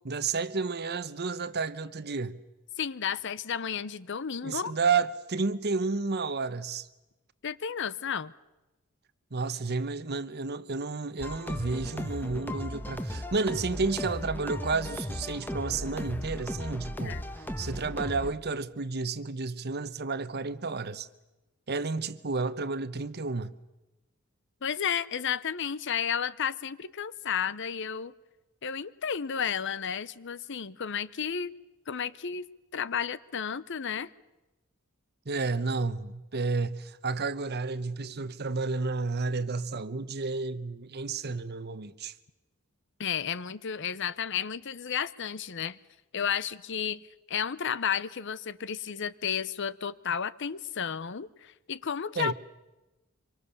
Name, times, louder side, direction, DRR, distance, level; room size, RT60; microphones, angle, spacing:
voice 1, 0.0-2.4 4.4-6.9 9.3-21.1 21.7-23.5 35.3-42.1 52.2-52.3, right 4 dB, 50° right, 1.0 m, -31 dB
voice 2, 2.8-4.7 7.4-8.3 17.0-17.2 24.6-28.1 28.6-31.5 31.9-32.4 32.7-34.1 43.0-45.8 46.1-47.0 47.3-52.3, left 7 dB, 60° left, 0.7 m, -32 dB
sound 1, 11.2-18.3, left 1 dB, 10° left, 1.2 m, -36 dB
25.5 x 24.5 x 7.1 m
head